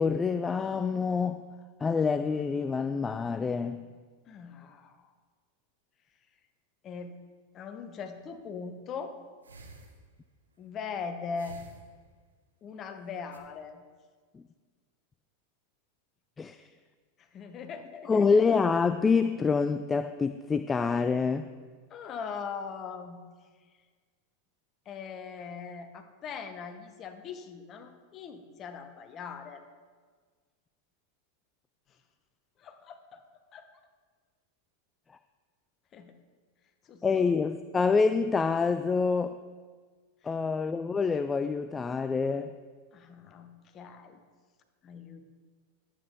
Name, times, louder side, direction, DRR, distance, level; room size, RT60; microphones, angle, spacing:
voice 1, 0.0-1.4 1.8-3.9 14.3-14.4 16.4-16.6 18.1-21.5 37.0-39.4 40.2-42.5, left 5 dB, 20° left, 11 dB, 0.3 m, -26 dB
voice 2, 4.3-5.1 6.8-7.2 7.5-9.1 10.6-11.6 12.6-13.8 17.2-18.4 21.9-23.2 24.8-29.6 32.6-33.2 33.5-33.7 35.9-36.2 36.8-37.3 40.2-40.3 42.9-44.2 44.8-45.2, left 5 dB, 35° left, 8 dB, 1.0 m, -41 dB
sound 1, 8.1-8.5 9.4-10.4 11.4-12.4 13.0-13.4, right 3 dB, 80° right, 1.0 m, -51 dB
11.5 x 8.4 x 3.6 m, 1.5 s
figure-of-eight pair, 90°, 0 cm